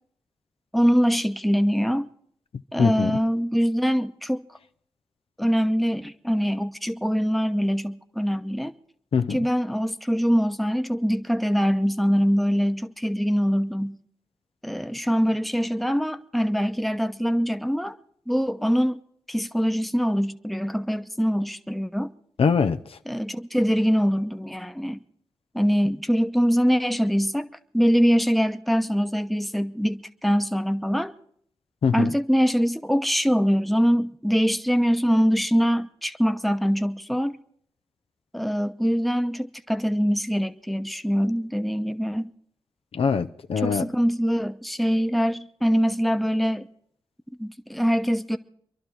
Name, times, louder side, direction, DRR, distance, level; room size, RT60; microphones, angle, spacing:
voice 1, 0.7-2.1 2.7-4.4 5.4-8.7 9.3-14.0 14.6-17.9 18.3-19.0 19.3-22.1 23.1-25.0 25.5-27.5 27.7-31.1 31.9-37.4 38.3-42.3 43.6-46.7 47.4-48.4, equal, ahead, 0.9 m, -23 dB
voice 2, 2.8-3.2 9.1-9.4 22.4-22.8 31.8-32.1 42.9-43.9, left 6 dB, 70° left, 0.6 m, -22 dB
26.5 x 11.5 x 4.6 m
cardioid pair, 40°, 10 cm